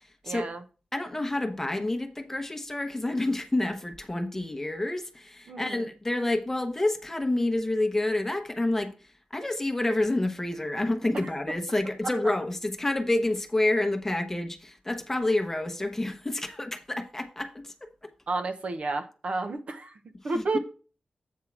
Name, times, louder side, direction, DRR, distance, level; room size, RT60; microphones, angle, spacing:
voice 1, 0.2-0.6 5.5-5.9 11.1-11.3 12.2-12.3 18.3-19.9 20.2-20.6, right 3 dB, 60° right, 0.9 m, -31 dB
voice 2, 0.9-8.9 9.3-17.9 20.3-20.6, left 2 dB, 15° left, 0.9 m, -28 dB
8.4 x 3.7 x 5.9 m
wide cardioid pair, 135°, 2 cm